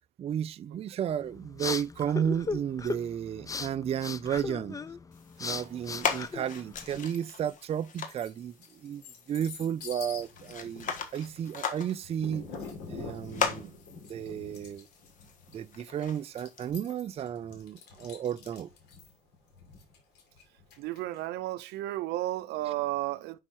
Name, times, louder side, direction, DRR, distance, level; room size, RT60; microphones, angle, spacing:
voice 1, 0.2-4.8 5.4-9.0 9.3-12.5 12.9-13.7 14.1-14.9 15.5-18.7, right 9 dB, 35° right, 0.4 m, -33 dB
sound 1, 1.1-7.0, left 4 dB, 20° left, 0.4 m, -38 dB
sound 2, 5.1-16.7, left 6 dB, 50° left, 1.4 m, -39 dB
sound 3, 7.1-7.5 7.9-21.2, left 5 dB, 85° left, 2.5 m, -46 dB
voice 2, 20.8-23.4, right 16 dB, 85° right, 0.6 m, -33 dB
5.6 x 5.5 x 4.4 m
cardioid pair, 110°, 17 cm